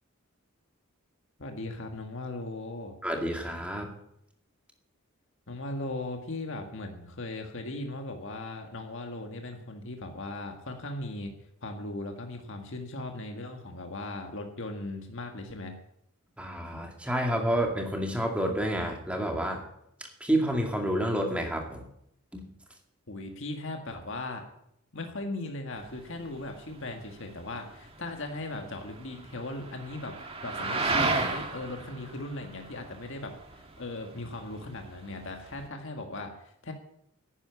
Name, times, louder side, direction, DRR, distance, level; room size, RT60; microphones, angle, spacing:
voice 1, 1.4-3.0 5.5-11.3 11.6-15.8 23.1-24.4 24.9-36.7, left 2 dB, 60° left, 4 dB, 1.8 m, -38 dB
voice 2, 3.0-3.9 16.4-19.6 20.2-21.8 22.3-22.4, right 1 dB, 5° right, 2 dB, 2.2 m, -29 dB
sound 1, 25.8-35.7, right 3 dB, 25° right, 1.8 m, -35 dB
11.0 x 9.7 x 9.4 m, 0.75 s
head